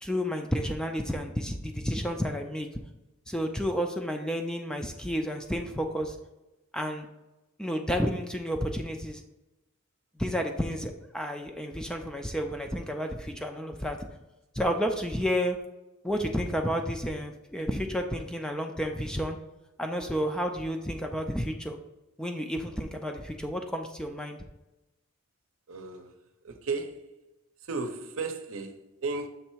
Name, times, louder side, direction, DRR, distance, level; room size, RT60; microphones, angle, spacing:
voice 1, 0.0-2.7 3.3-6.2 6.7-7.1 7.6-9.2 10.2-14.0 14.5-15.6 16.0-19.4 19.8-21.8 22.2-24.4, equal, 5° left, 0.4 m, -31 dB
voice 2, 25.7-26.2 26.4-27.2 27.6-29.3, right 4 dB, 75° right, 0.7 m, -35 dB
6.7 x 3.2 x 4.6 m
head